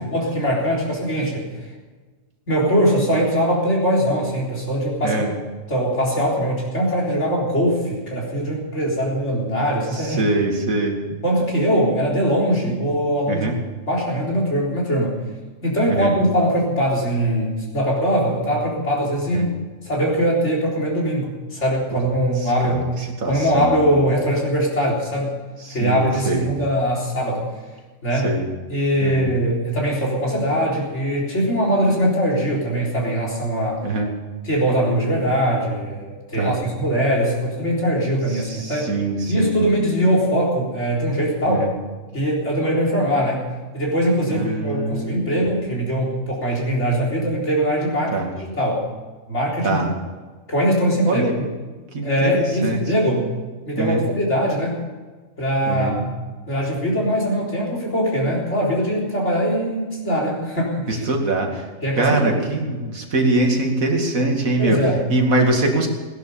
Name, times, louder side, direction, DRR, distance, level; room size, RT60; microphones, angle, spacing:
voice 1, 0.0-1.5 2.5-5.2 5.7-10.2 11.1-13.5 13.9-15.2 15.6-19.5 19.8-22.8 23.2-25.4 25.7-27.5 28.0-28.3 28.7-33.8 34.4-38.9 39.3-41.6 42.1-43.5 43.7-48.9 49.3-49.9 50.5-51.5 52.0-53.3 53.7-54.8 55.4-56.0 56.5-61.0 61.8-62.4 64.6-65.1, equal, 55° left, -3 dB, 4.3 m, -21 dB
voice 2, 5.0-5.3 9.9-11.0 13.3-13.6 15.9-16.1 19.3-19.5 21.9-22.0 22.4-23.9 25.6-26.5 28.2-28.5 29.0-29.3 33.8-34.1 36.4-36.6 38.3-39.5 41.5-41.7 44.3-45.4 48.1-48.3 49.6-49.9 51.1-51.3 51.9-52.8 53.8-54.0 55.7-56.0 60.9-61.7 62.0-64.8 65.1-65.9, right 2 dB, 85° right, 2 dB, 2.6 m, -23 dB
17.5 x 10.5 x 7.0 m, 1.3 s
omnidirectional pair, 1.4 m